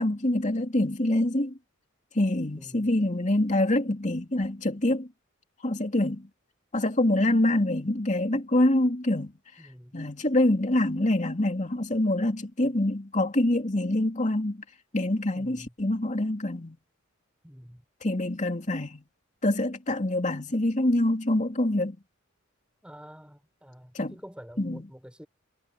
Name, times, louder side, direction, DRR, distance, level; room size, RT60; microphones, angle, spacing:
voice 1, 0.0-1.5 2.1-5.1 5.6-6.3 6.7-9.3 9.9-14.6 14.9-16.8 18.0-19.0 19.4-22.0 23.9-24.1 24.6-24.8, left 1 dB, 35° left, 2.7 m, -25 dB
voice 2, 2.5-2.9 9.6-10.2 15.3-15.7 17.4-17.8 22.8-25.3, equal, 5° right, 5.7 m, -48 dB
head